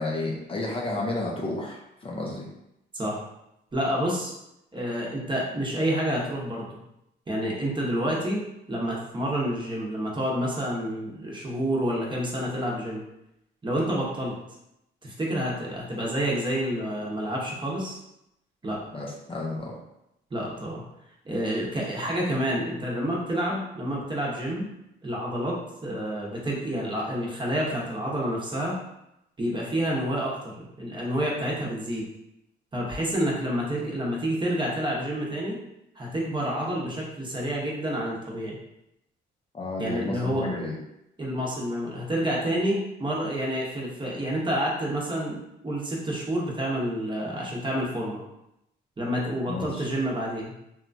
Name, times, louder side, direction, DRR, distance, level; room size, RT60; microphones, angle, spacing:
voice 1, 0.0-2.5 18.9-19.8 39.5-40.8 49.4-49.9, left 2 dB, 30° left, -2 dB, 0.5 m, -32 dB
voice 2, 3.7-4.3 4.7-6.7 7.3-8.4 8.7-13.0 13.6-14.4 15.0-18.0 18.6-18.8 20.3-20.8 21.2-24.7 25.0-28.8 29.4-32.0 32.7-35.6 36.0-38.6 39.8-40.5 41.2-48.2 49.0-50.5, equal, 25° right, -4 dB, 0.8 m, -28 dB
2.9 x 2.3 x 2.5 m, 0.84 s
cardioid pair, 90°, 20 cm